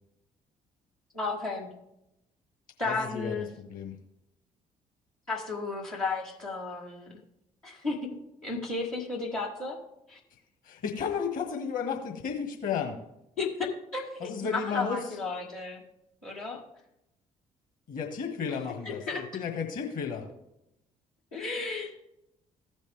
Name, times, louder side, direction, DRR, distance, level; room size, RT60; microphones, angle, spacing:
voice 1, 1.1-1.7 2.8-3.5 5.3-7.1 7.6-8.0 8.4-9.8 10.1-10.2 13.4-15.8 16.2-16.6 18.8-19.3 21.3-21.9, left 3 dB, 85° left, -7 dB, 1.6 m, -33 dB
voice 2, 2.9-3.4 3.7-4.0 10.6-13.0 14.2-15.0 17.9-20.2, left 6 dB, 55° left, 3 dB, 1.7 m, -33 dB
15.5 x 5.3 x 3.4 m, 0.84 s
figure-of-eight pair, 45°, 17 cm